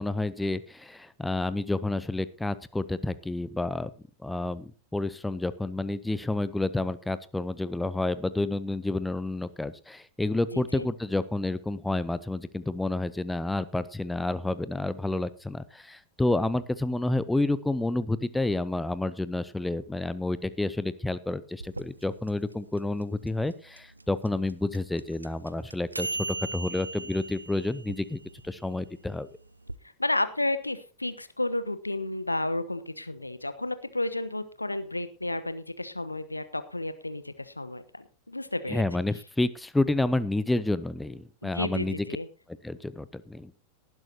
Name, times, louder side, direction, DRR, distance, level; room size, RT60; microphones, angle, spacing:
voice 1, 0.0-3.9 4.2-26.1 26.5-29.3 38.7-42.0 42.5-43.6, left 2 dB, 5° left, 15 dB, 0.7 m, -29 dB
voice 2, 10.5-10.8 30.0-38.8 41.4-42.3, left 2 dB, 85° left, 13 dB, 1.0 m, -32 dB
sound 1, 21.6-29.8, right 2 dB, 85° right, 0.5 m, -39 dB
18.5 x 11.0 x 2.9 m, 0.36 s
figure-of-eight pair, 90°, 0 cm